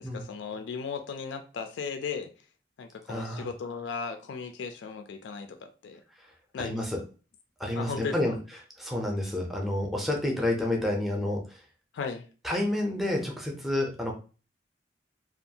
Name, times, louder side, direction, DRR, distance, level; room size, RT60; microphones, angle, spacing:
voice 1, 0.0-2.3 2.8-6.0 6.5-6.8 7.8-8.3 11.9-12.3, left 5 dB, 80° left, 7 dB, 0.3 m, -36 dB
voice 2, 3.1-3.5 6.2-6.3 6.6-7.0 7.6-8.4 8.8-11.6 12.4-14.1, left 1 dB, ahead, 0 dB, 0.5 m, -29 dB
2.5 x 2.3 x 2.7 m, 0.35 s
head